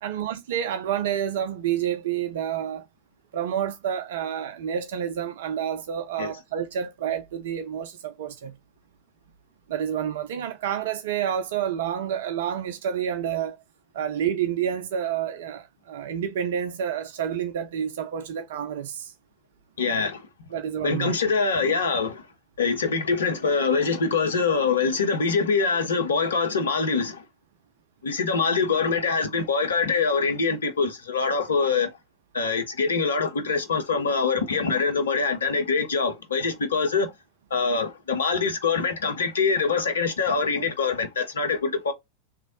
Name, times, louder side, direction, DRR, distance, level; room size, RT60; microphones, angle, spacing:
voice 1, 0.0-2.9 3.3-8.6 9.7-13.6 13.9-19.1 20.5-21.1, right 9 dB, 55° right, 0.4 m, -29 dB
voice 2, 19.8-20.3 20.8-22.3 22.6-27.2 28.0-31.9 32.3-37.1 37.5-41.9, left 4 dB, 65° left, 0.7 m, -24 dB
3.1 x 2.4 x 3.9 m
figure-of-eight pair, 90°, 0 cm